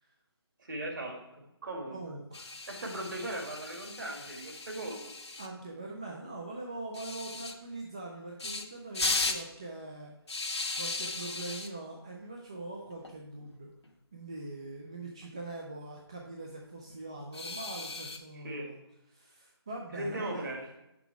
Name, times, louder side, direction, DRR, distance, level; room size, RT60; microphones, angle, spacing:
voice 1, 0.6-1.2 1.6-2.0 2.7-5.0 18.3-18.7 19.9-20.8, right 1 dB, 50° right, 1 dB, 2.0 m, -38 dB
voice 2, 1.9-2.5 5.4-10.1 10.7-13.7 14.1-18.8 19.1-20.5, right 2 dB, 15° right, -1 dB, 0.3 m, -42 dB
sound 1, 2.3-5.5 6.9-7.5 8.4-8.6 8.9-9.4 10.3-11.7 12.9-13.1 13.4-13.5 13.8-13.9 15.2-15.7 17.3-18.2, left 3 dB, 90° left, 1.1 m, -36 dB
7.0 x 6.0 x 4.5 m, 0.90 s
hypercardioid pair, 170°, 14 cm